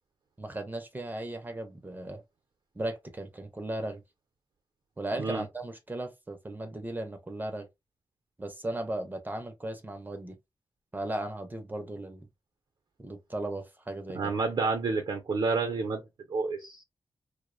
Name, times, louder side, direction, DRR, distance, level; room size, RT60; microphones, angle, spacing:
voice 1, 0.4-2.2 2.8-4.0 5.0-7.7 8.4-10.4 10.9-12.3 13.0-14.3, right 1 dB, 25° right, 0.5 m, -36 dB
voice 2, 14.1-16.0 16.3-16.8, right 4 dB, 75° right, 0.6 m, -29 dB
2.5 x 2.0 x 2.4 m
cardioid pair, 75°, 8 cm